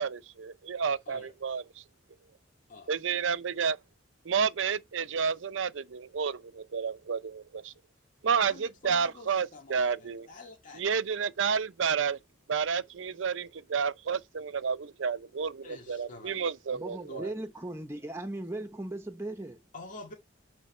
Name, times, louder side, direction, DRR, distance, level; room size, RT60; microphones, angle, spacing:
voice 1, 0.0-1.6 2.9-3.8 4.3-7.7 8.2-10.3 10.7-12.2 12.5-17.3, right 6 dB, 75° right, 0.6 m, -30 dB
voice 2, 8.4-10.8 15.6-16.5 17.1-17.3 19.7-20.1, left 2 dB, 45° left, 2.2 m, -47 dB
voice 3, 16.7-19.6, right 1 dB, 15° right, 0.8 m, -38 dB
8.4 x 3.4 x 4.4 m
head